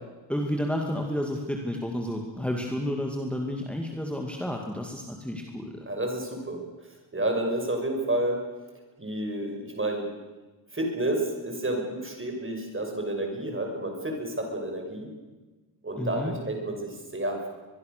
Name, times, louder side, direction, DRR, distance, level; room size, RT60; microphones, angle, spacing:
voice 1, 0.3-5.9 16.0-16.3, equal, 5° left, 1 dB, 2.3 m, -31 dB
voice 2, 5.9-6.6 7.1-8.4 9.0-10.1 10.7-15.1 15.8-17.5, right 1 dB, 30° right, 2 dB, 5.9 m, -30 dB
24.0 x 22.5 x 6.8 m, 1.2 s
wide cardioid pair, 135°, 43 cm